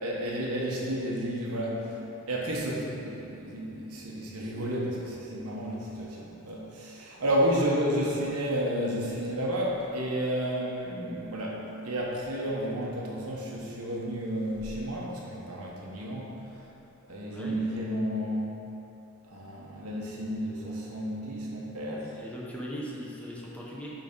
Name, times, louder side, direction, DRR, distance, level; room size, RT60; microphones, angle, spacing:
voice 1, 0.0-16.4 17.1-18.6 19.3-22.2, equal, 75° right, -3 dB, 1.2 m, -31 dB
voice 2, 22.2-23.9, equal, 5° left, -5 dB, 0.9 m, -39 dB
5.6 x 5.3 x 5.4 m, 2.9 s
head